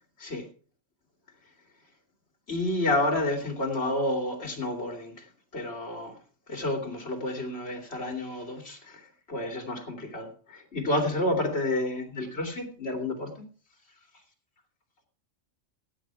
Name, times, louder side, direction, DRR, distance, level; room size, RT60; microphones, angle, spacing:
voice 1, 2.5-5.1 5.5-6.1 6.5-9.0 9.3-13.3, left 1 dB, 55° left, 4 dB, 3.1 m, -30 dB
15.0 x 8.9 x 4.8 m, 0.40 s
omnidirectional pair, 1.3 m